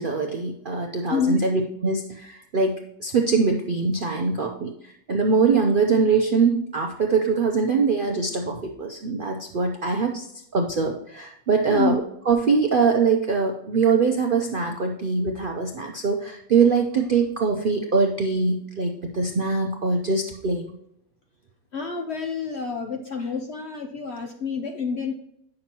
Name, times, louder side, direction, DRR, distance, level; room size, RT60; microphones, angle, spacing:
voice 1, 0.0-4.7 5.1-10.2 10.5-12.0 12.3-20.6, right 4 dB, 60° right, 2 dB, 0.5 m, -23 dB
voice 2, 1.1-1.4 11.7-12.0 21.7-25.1, left 5 dB, 60° left, 3 dB, 0.7 m, -28 dB
8.8 x 6.3 x 2.9 m, 0.74 s
omnidirectional pair, 1.8 m